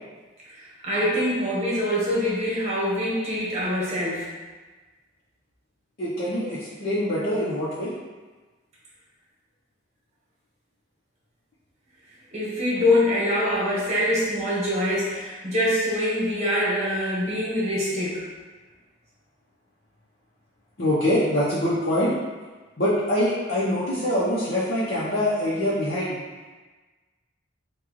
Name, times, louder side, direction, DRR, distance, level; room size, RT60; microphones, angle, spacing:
voice 1, 0.5-4.3 12.3-18.2, left 1 dB, 35° right, -6 dB, 1.2 m, -24 dB
voice 2, 6.0-7.9 20.8-22.2 22.8-26.2, left 1 dB, 50° left, -9 dB, 0.8 m, -24 dB
6.0 x 2.3 x 3.1 m, 1.3 s
head